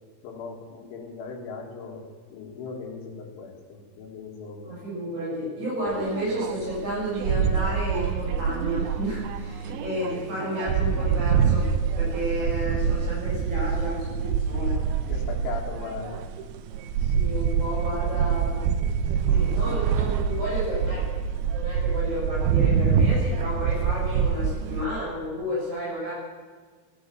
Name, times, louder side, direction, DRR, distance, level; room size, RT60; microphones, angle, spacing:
voice 1, 0.2-2.0 2.3-4.7 15.1-16.2 19.3-19.5, left 4 dB, 75° left, 0 dB, 4.5 m, -38 dB
voice 2, 4.6-11.7 12.0-14.8 17.0-18.6 19.3-21.1 21.5-26.1, equal, 40° right, -8 dB, 7.8 m, -31 dB
sound 1, 5.9-24.9, right 7 dB, 80° right, 2.2 m, -25 dB
17.0 x 10.0 x 7.2 m, 1.4 s
omnidirectional pair, 5.5 m